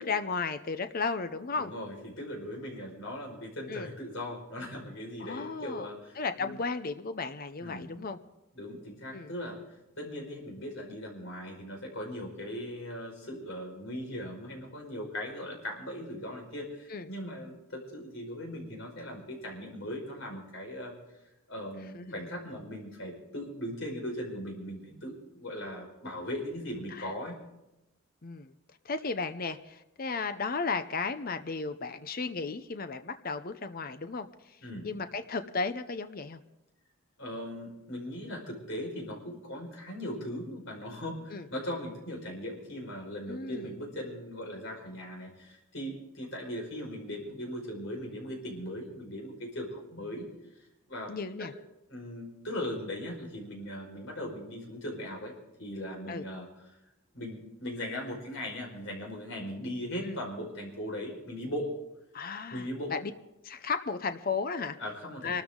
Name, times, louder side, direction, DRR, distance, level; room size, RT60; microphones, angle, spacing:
voice 1, 0.0-1.7 3.7-3.9 5.2-5.9 6.2-8.2 9.1-9.3 16.9-17.1 21.9-22.3 26.9-27.1 28.2-28.5 28.8-34.6 34.8-36.4 41.3-41.5 43.3-43.7 51.1-51.5 56.1-56.2 60.0-60.2 62.1-63.1 63.4-64.8 65.2-65.4, left 4 dB, 40° left, 10 dB, 0.7 m, -34 dB
voice 2, 1.5-6.6 7.6-7.9 8.5-9.6 10.0-21.0 21.5-27.4 34.6-34.9 37.2-50.3 50.9-51.5 51.9-55.3 55.6-56.5 57.1-61.7 62.5-62.9 64.8-65.4, left 1 dB, 60° left, 1 dB, 5.2 m, -39 dB
25.0 x 13.5 x 3.8 m, 0.93 s
head